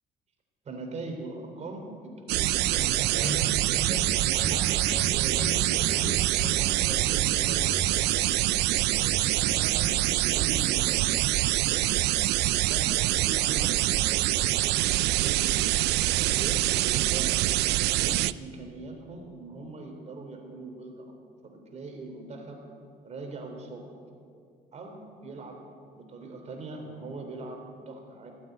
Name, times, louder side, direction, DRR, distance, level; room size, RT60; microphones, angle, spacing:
voice 1, 0.7-3.5 4.3-6.2 6.6-8.3 8.8-11.1 11.6-12.0 12.6-15.8 16.1-17.5 17.9-21.1 21.4-22.6 23.0-23.9 24.7-25.6 25.9-28.3, right 2 dB, 40° right, 3 dB, 3.5 m, -41 dB
sound 1, 2.3-18.3, right 17 dB, 80° right, 0.4 m, -25 dB
sound 2, 2.7-10.5, equal, 5° left, 3.0 m, -38 dB
17.5 x 8.7 x 9.3 m, 2.3 s
cardioid pair, 110°, 17 cm